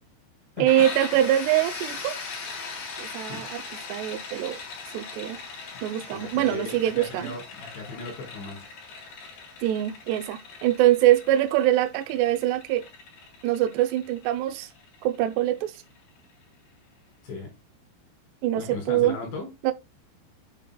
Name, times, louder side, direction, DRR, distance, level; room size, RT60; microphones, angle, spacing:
voice 1, 0.6-2.2 3.0-3.6 3.9-4.6 4.9-5.4 5.8-7.3 9.6-12.8 13.4-14.7 15.0-15.7 18.4-19.2 19.6-19.7, right 13 dB, 80° right, 2.6 m, -23 dB
sound 1, 0.7-16.3, left 4 dB, 55° left, 4.9 m, -40 dB
voice 2, 6.1-8.7 17.2-17.5 18.6-19.5, left 3 dB, 70° left, 6.7 m, -37 dB
10.0 x 9.1 x 2.3 m
omnidirectional pair, 5.5 m